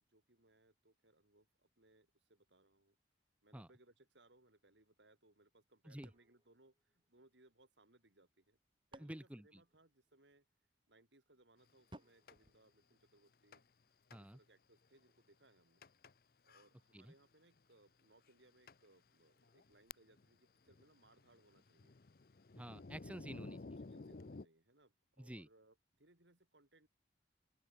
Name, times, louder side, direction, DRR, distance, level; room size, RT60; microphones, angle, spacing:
voice 1, 0.1-3.0 3.4-8.6 8.9-10.5 10.9-13.6 14.1-15.8 16.4-21.9 23.8-26.9, right 2 dB, 85° right, 4.6 m, -69 dB
sound 1, 6.0-7.6 8.4-10.4 11.9-13.5, right 1 dB, 25° right, 5.5 m, -63 dB
voice 2, 9.0-9.6 14.1-14.4 16.9-17.1 22.6-23.6 25.2-25.5, right 1 dB, 5° right, 0.7 m, -50 dB
Thunder, 12.3-12.4 13.5-13.8 14.1-14.2 14.8-14.9 15.8-16.1 16.5-16.7 17.6-17.7 18.3-18.4 18.7-18.8 19.4-20.3 20.6-24.5, left 3 dB, 55° left, 0.7 m, -53 dB
open air
head